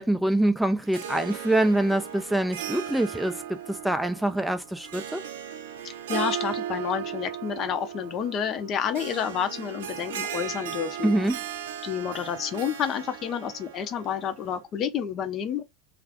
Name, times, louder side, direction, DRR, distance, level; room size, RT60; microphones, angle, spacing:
voice 1, 0.0-5.2 11.0-11.4, right 1 dB, 5° right, 0.3 m, -25 dB
Harp, 0.8-14.6, right 9 dB, 80° right, 0.5 m, -37 dB
voice 2, 5.8-11.1 11.8-15.6, left 8 dB, 40° left, 0.6 m, -29 dB
2.4 x 2.4 x 3.4 m
hypercardioid pair, 100°, 0 cm